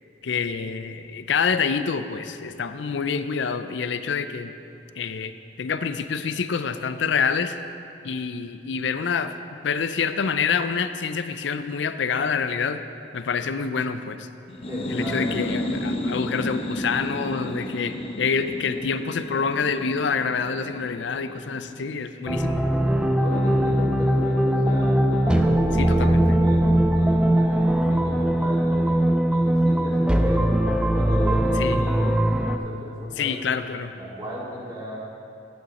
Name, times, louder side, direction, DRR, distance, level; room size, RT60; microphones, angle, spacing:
voice 1, 0.2-4.5 5.0-7.6 8.0-12.8 13.1-14.3 14.9-22.7 25.8-26.2 31.6-31.8 33.2-33.9, left 5 dB, 70° left, 10 dB, 0.5 m, -27 dB
sound 1, 14.5-22.0, left 1 dB, 30° left, 0.8 m, -32 dB
voice 2, 14.7-15.5 23.1-30.4 30.8-33.4 34.0-35.0, left 1 dB, 20° right, -6 dB, 2.2 m, -35 dB
sound 2, 22.3-32.6, right 1 dB, 5° right, 0.3 m, -20 dB
10.5 x 8.9 x 4.2 m, 2.6 s
head